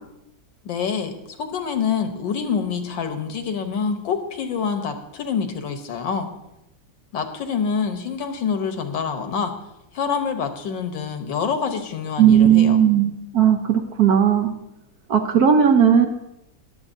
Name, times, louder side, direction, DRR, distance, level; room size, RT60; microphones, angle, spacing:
voice 1, 0.6-1.1 1.4-6.3 7.1-9.5 9.9-12.8, left 6 dB, 75° left, 7 dB, 1.7 m, -26 dB
voice 2, 12.2-14.5 15.1-16.1, right 8 dB, 60° right, 5 dB, 1.2 m, -16 dB
21.0 x 7.7 x 2.7 m, 0.86 s
omnidirectional pair, 2.1 m